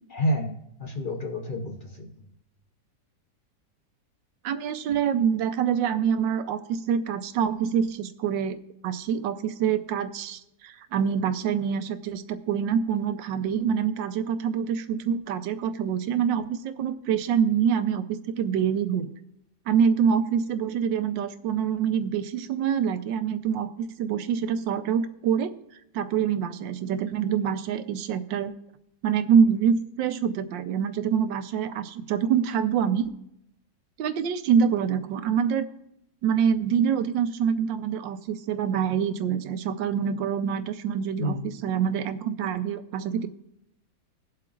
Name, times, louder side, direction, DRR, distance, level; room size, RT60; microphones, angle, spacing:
voice 1, 0.1-2.1 41.2-41.6, equal, 55° left, 4 dB, 0.5 m, -29 dB
voice 2, 4.4-8.6 8.8-19.1 19.7-25.5 25.9-28.5 29.0-33.1 34.0-35.7 36.2-43.3, right 7 dB, 90° right, 10 dB, 1.4 m, -25 dB
21.0 x 7.6 x 2.4 m, 0.79 s
omnidirectional pair, 1.9 m